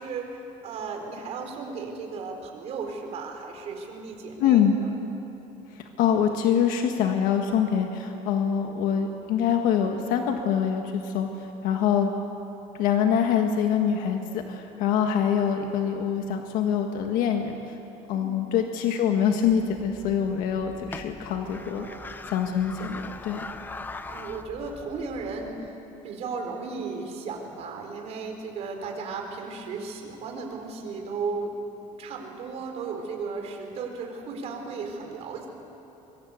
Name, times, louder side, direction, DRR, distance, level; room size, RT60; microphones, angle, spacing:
voice 1, 0.0-4.9 11.6-11.8 18.1-18.4 21.7-22.2 24.0-25.8 26.0-31.6 31.9-35.5, right 4 dB, 50° right, 3 dB, 3.9 m, -35 dB
voice 2, 4.4-4.7 5.7-12.1 12.7-17.8 18.1-21.9 22.3-23.5, left 8 dB, 70° left, 4 dB, 1.6 m, -25 dB
sound 1, 19.4-25.7, left 3 dB, 15° left, 0.8 m, -42 dB
24.0 x 23.0 x 8.1 m, 3.0 s
cardioid pair, 160°, 14 cm